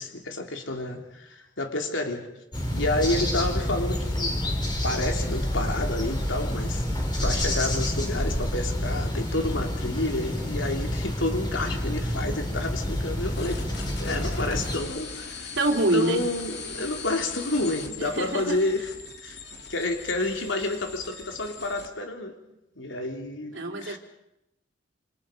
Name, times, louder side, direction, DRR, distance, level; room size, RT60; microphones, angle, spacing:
voice 1, 0.0-2.3 2.7-4.4 4.8-6.8 7.2-13.7 14.0-15.5 15.9-18.9 19.2-19.4 19.7-22.3 22.8-23.5 23.8-24.0, left 2 dB, 85° left, 3 dB, 3.3 m, -29 dB
sound 1, 2.5-14.8, left 1 dB, 25° left, 5.4 m, -28 dB
sound 2, 13.3-21.9, left 4 dB, 60° left, 3.2 m, -40 dB
voice 2, 15.6-16.2 18.0-18.6 23.5-24.0, right 2 dB, 75° right, 3 dB, 2.9 m, -25 dB
28.0 x 27.5 x 5.2 m, 0.85 s
head